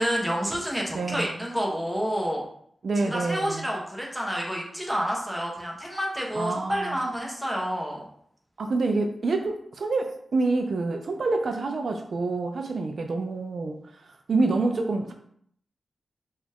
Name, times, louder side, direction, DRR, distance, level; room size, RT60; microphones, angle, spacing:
voice 1, 0.0-2.4 3.0-8.0, equal, 5° right, -2 dB, 1.0 m, -29 dB
voice 2, 0.9-1.4 2.8-3.7 6.3-7.0 8.6-13.8 14.3-15.1, right 3 dB, 65° right, 5 dB, 0.4 m, -27 dB
5.0 x 2.4 x 3.5 m, 0.67 s
wide cardioid pair, 105°, 0 cm